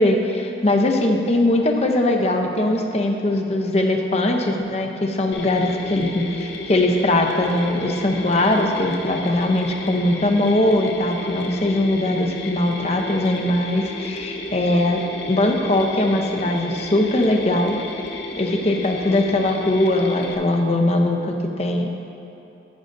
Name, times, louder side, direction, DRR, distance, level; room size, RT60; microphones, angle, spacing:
voice 1, 0.0-15.0 15.3-17.8 18.4-21.9, left 1 dB, 35° left, 3 dB, 0.6 m, -20 dB
Mechanisms, 5.3-20.3, left 2 dB, 70° left, 0.8 m, -33 dB
10.5 x 9.6 x 2.6 m, 2.9 s
head